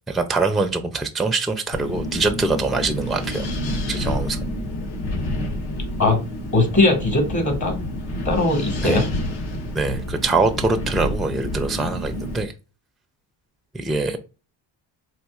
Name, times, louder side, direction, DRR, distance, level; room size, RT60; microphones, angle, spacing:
voice 1, 0.1-3.5 3.9-4.4 8.8-9.0 9.7-12.5 13.7-14.2, right 3 dB, ahead, 0.5 m, -23 dB
Wind, 1.7-12.4, left 1 dB, 60° left, 1.1 m, -28 dB
voice 2, 6.5-7.8 8.2-9.0, left 2 dB, 40° left, 1.8 m, -19 dB
4.1 x 2.7 x 2.4 m
supercardioid pair, 65°, 45 cm